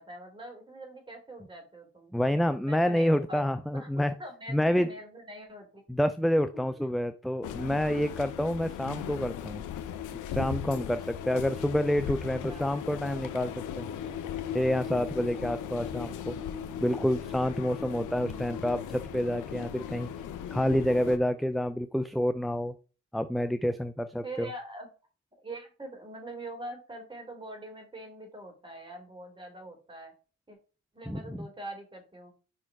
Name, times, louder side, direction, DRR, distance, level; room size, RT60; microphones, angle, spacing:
voice 1, 0.0-2.1 2.6-3.4 3.7-3.9 4.2-6.0 12.0-12.2 12.4-12.8 24.2-24.9 25.4-30.1 30.5-30.6 30.9-32.3, right 1 dB, 15° right, 2 dB, 3.2 m, -43 dB
voice 2, 2.1-4.1 4.5-4.9 5.9-9.6 10.3-13.9 14.5-16.3 16.8-20.1 20.5-22.7 23.1-24.5 31.1-31.4, equal, ahead, 11 dB, 0.4 m, -28 dB
sound 1, 7.4-21.2, left 8 dB, 85° left, 0.8 m, -38 dB
5.5 x 4.4 x 4.7 m, 0.35 s
cardioid pair, 90°, 30 cm